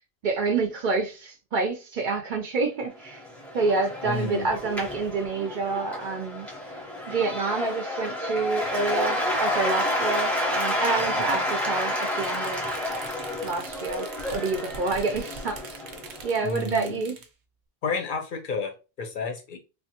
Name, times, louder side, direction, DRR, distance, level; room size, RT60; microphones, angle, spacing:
voice 1, 0.2-3.2 3.5-6.5 7.1-12.7 13.4-15.8 16.2-17.2, right 4 dB, 60° right, 0.6 m, -28 dB
Cheering / Applause / Crowd, 3.0-16.5, left 1 dB, ahead, 0.7 m, -30 dB
voice 2, 4.0-4.5 11.2-11.4 16.4-17.0 17.8-19.6, left 4 dB, 60° left, 0.6 m, -31 dB
sound 1, 11.7-17.3, right 4 dB, 90° right, 0.9 m, -43 dB
3.4 x 2.2 x 2.7 m
omnidirectional pair, 1.1 m